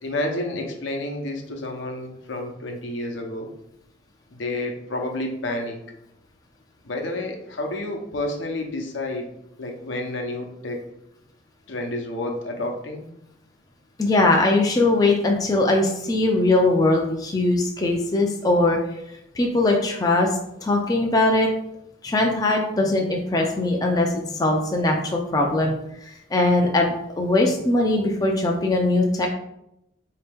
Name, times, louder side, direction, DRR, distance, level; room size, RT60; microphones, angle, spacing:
voice 1, 0.0-3.5 4.4-5.8 6.8-9.3 9.6-10.9 11.7-13.1, left 1 dB, 75° left, 2 dB, 0.7 m, -30 dB
voice 2, 14.0-18.8 19.3-20.3 20.6-21.5 22.0-25.7 26.0-29.3, left 2 dB, 20° left, 1 dB, 0.3 m, -21 dB
4.2 x 2.8 x 3.4 m, 0.82 s
head